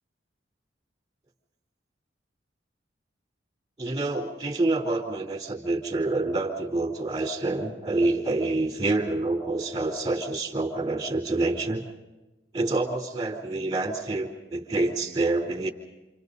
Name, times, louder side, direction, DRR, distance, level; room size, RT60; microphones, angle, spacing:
voice 1, 3.8-11.8 12.5-15.7, right 2 dB, 25° right, 2 dB, 3.6 m, -27 dB
29.0 x 28.5 x 4.1 m, 1.0 s
head